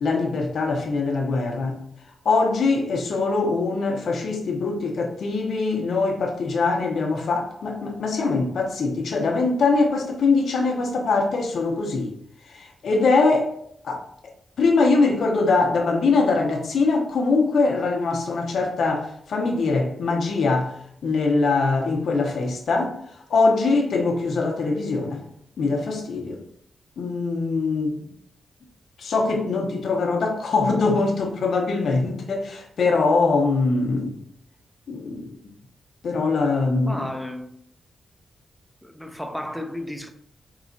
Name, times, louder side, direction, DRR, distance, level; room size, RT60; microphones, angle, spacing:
voice 1, 0.0-1.8 2.2-12.1 12.5-13.5 13.8-14.3 14.6-25.2 25.6-26.4 27.0-28.1 29.0-34.1 34.9-35.3 36.0-37.1, left 3 dB, 70° left, 0.9 m, -22 dB
voice 2, 36.8-37.6 38.8-40.1, left 1 dB, 5° left, 0.5 m, -33 dB
4.7 x 3.0 x 2.6 m
wide cardioid pair, 130°, 0 cm